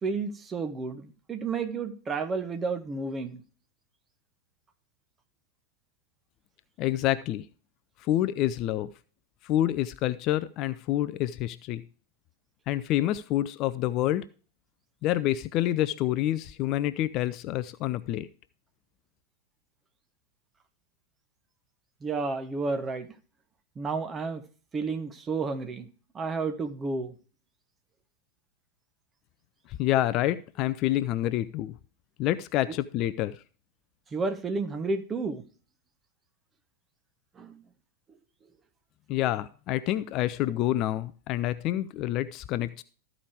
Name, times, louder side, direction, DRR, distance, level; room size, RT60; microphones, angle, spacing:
voice 1, 0.0-3.4 22.0-23.1 23.8-24.4 24.7-25.9 26.1-27.1 34.1-35.4 37.4-37.6, right 4 dB, 20° right, 9 dB, 1.0 m, -31 dB
voice 2, 6.8-7.4 8.0-8.9 9.4-11.8 12.7-14.2 15.0-18.3 29.7-31.8 32.2-33.4 39.1-42.8, left 14 dB, 40° left, 15 dB, 0.4 m, -27 dB
13.5 x 5.0 x 4.7 m, 0.39 s
figure-of-eight pair, 90°, 0 cm